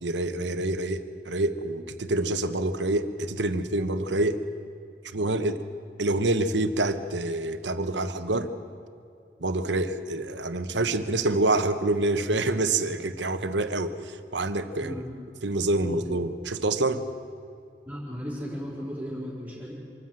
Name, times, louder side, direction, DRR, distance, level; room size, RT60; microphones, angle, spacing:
voice 1, 0.0-4.4 5.1-5.6 6.0-8.5 9.4-14.9 15.4-17.0, right 2 dB, 85° right, 10 dB, 1.1 m, -27 dB
voice 2, 14.8-15.1 15.8-16.0 17.9-19.7, equal, 10° right, -5 dB, 4.3 m, -36 dB
25.5 x 13.5 x 7.7 m, 2.5 s
head